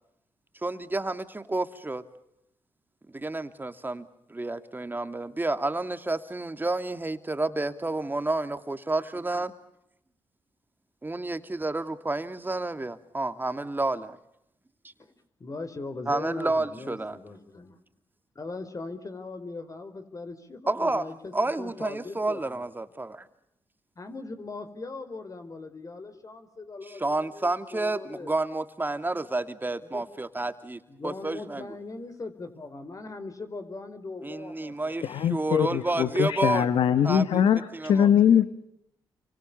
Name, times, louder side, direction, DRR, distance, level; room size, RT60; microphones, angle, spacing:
voice 1, 0.6-2.0 3.1-9.5 11.0-14.2 16.1-17.2 20.7-21.1 21.3-23.3 26.9-31.7 34.2-36.7 37.0-37.4 37.7-38.4, right 2 dB, 20° right, 10 dB, 2.6 m, -30 dB
voice 2, 15.4-17.8 18.3-22.6 24.0-28.3 29.9-30.0 30.9-36.2, left 3 dB, 40° left, 9 dB, 4.6 m, -40 dB
voice 3, 35.0-38.4, left 9 dB, 75° left, 12 dB, 1.5 m, -22 dB
29.5 x 25.0 x 6.9 m, 0.80 s
supercardioid pair, 50°, 9 cm